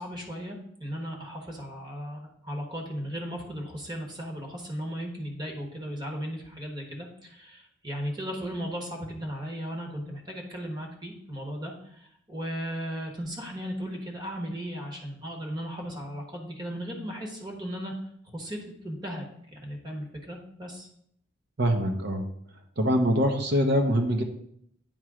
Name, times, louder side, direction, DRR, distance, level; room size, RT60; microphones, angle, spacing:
voice 1, 0.0-17.9 18.3-20.9, equal, 20° right, 1 dB, 1.1 m, -36 dB
voice 2, 21.6-22.3 22.8-24.2, equal, 55° right, 4 dB, 0.8 m, -24 dB
8.9 x 3.1 x 4.8 m, 0.69 s
head